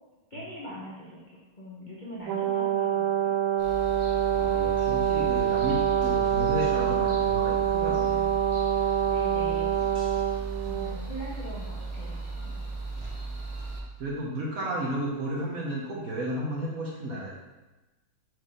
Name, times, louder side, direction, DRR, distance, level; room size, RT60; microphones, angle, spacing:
voice 1, 0.3-3.4 9.1-9.9 10.7-12.7, equal, 55° left, -6 dB, 0.5 m, -42 dB
Brass instrument, 2.3-11.0, right 9 dB, 75° right, 1.3 m, -26 dB
sound 1, 3.6-13.8, right 3 dB, 25° right, 0.6 m, -36 dB
voice 2, 4.3-8.4 14.0-17.3, right 1 dB, 55° right, -4 dB, 1.0 m, -33 dB
4.6 x 4.5 x 4.8 m, 1.1 s
omnidirectional pair, 2.4 m